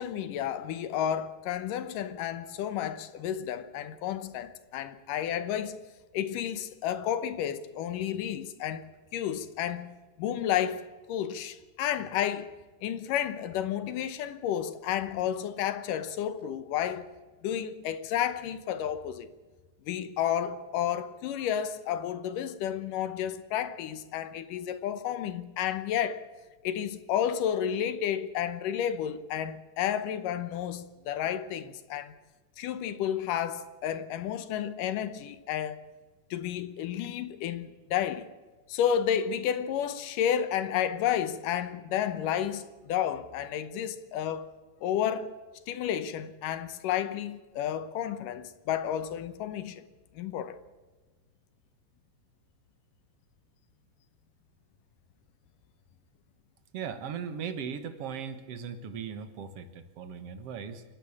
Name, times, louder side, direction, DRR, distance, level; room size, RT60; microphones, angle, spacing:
voice 1, 0.0-5.8 6.1-8.8 9.1-12.5 12.8-17.1 17.4-19.3 19.9-26.3 26.6-32.2 32.6-35.8 36.3-38.3 38.7-44.5 44.8-45.4 45.7-49.9 50.2-50.6, left 10 dB, 75° left, 2.5 m, -31 dB
voice 2, 56.7-60.8, right 7 dB, 55° right, 2.0 m, -38 dB
28.5 x 12.0 x 8.6 m
omnidirectional pair, 4.0 m